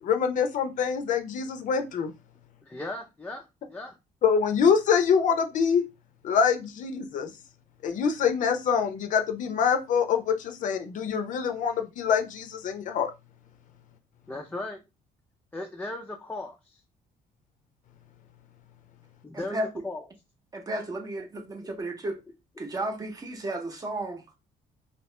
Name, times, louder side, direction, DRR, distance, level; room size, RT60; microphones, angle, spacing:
voice 1, 0.0-2.1 4.2-5.8 6.2-7.3 7.8-13.1, left 6 dB, 60° left, 0.6 m, -25 dB
voice 2, 2.6-4.0 14.3-14.8 15.5-16.8 19.2-20.1 21.2-21.7, left 2 dB, 10° left, 0.4 m, -37 dB
voice 3, 19.3-19.7 20.5-22.2 22.6-24.4, right 1 dB, 25° right, 0.7 m, -33 dB
3.0 x 2.7 x 3.2 m
cardioid pair, 140°, 15 cm